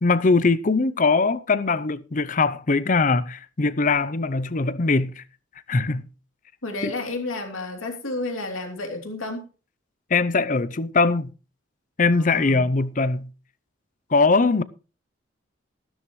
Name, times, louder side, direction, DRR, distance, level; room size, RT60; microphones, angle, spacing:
voice 1, 0.0-5.2 5.7-6.1 6.8-6.9 10.1-11.3 12.0-13.3 14.1-14.6, left 3 dB, 40° left, 0.6 m, -21 dB
voice 2, 6.6-9.5 12.1-12.7, left 2 dB, 90° left, 3.1 m, -31 dB
14.5 x 12.5 x 3.1 m
head